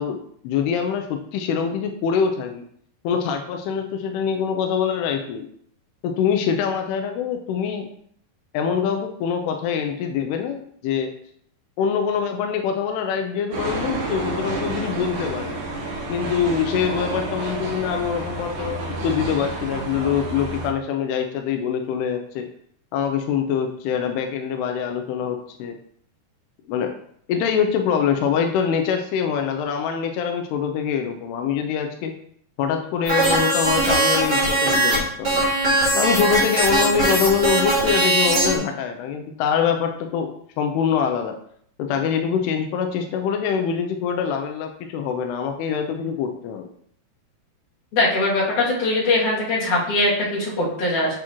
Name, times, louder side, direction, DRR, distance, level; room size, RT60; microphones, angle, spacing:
voice 1, 0.0-2.6 3.0-5.5 6.0-7.9 8.5-11.1 11.8-15.6 16.1-22.5 22.9-25.8 26.7-27.0 27.3-32.2 32.6-35.5 35.9-41.4 41.8-46.7, left 7 dB, 90° left, 5 dB, 2.7 m, -24 dB
sound 1, 13.5-20.7, right 2 dB, 65° right, 2.8 m, -30 dB
sound 2, 33.0-35.0 35.2-38.6, right 1 dB, 30° right, 2.8 m, -20 dB
voice 2, 47.9-51.1, left 2 dB, 55° left, -7 dB, 3.8 m, -21 dB
8.7 x 5.7 x 3.0 m, 0.66 s
omnidirectional pair, 4.6 m